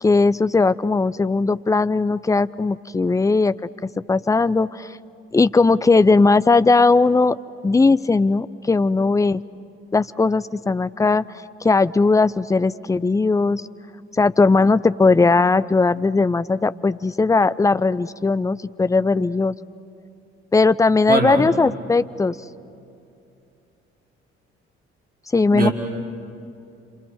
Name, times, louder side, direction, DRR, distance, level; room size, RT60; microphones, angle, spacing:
voice 1, 0.0-3.5 3.8-4.9 5.3-7.4 7.6-9.4 9.9-11.2 11.6-13.6 14.2-19.5 20.5-22.4 25.3-25.7, left 3 dB, 10° left, 16 dB, 0.6 m, -18 dB
voice 2, 21.1-21.5 25.5-25.7, right 2 dB, 25° right, 1 dB, 4.2 m, -21 dB
27.5 x 27.0 x 7.9 m, 2.6 s
figure-of-eight pair, 50°, 33 cm